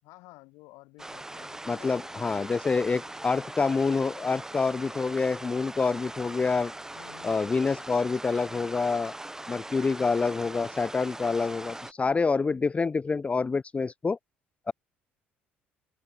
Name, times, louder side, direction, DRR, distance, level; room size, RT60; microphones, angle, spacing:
voice 1, 0.0-3.4 6.9-7.9, left 24 dB, 60° left, 5.8 m, -54 dB
sound 1, 1.0-11.9, right 1 dB, 10° right, 5.4 m, -41 dB
voice 2, 1.7-6.7 7.2-9.1 9.5-14.2 14.7-14.8, left 4 dB, 20° left, 0.6 m, -27 dB
open air
figure-of-eight pair, 55°, 6 cm